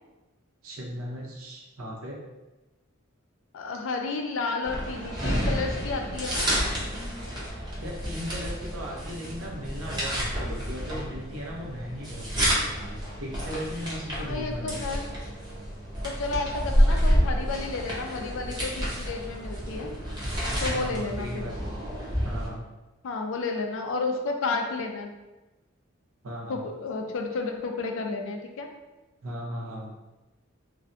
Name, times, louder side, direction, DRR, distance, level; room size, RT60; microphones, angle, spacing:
voice 1, 0.6-2.2 7.1-7.2 7.8-14.8 20.7-21.8 22.2-22.6 26.2-26.6 29.2-29.9, equal, 85° right, -3 dB, 0.6 m, -37 dB
voice 2, 3.5-6.5 14.2-15.1 16.0-19.9 20.6-21.4 23.0-25.1 26.5-28.7, left 3 dB, 70° left, 3 dB, 0.4 m, -31 dB
sound 1, 4.6-22.5, equal, 20° right, 0.7 m, -29 dB
2.5 x 2.1 x 2.5 m, 1.1 s
head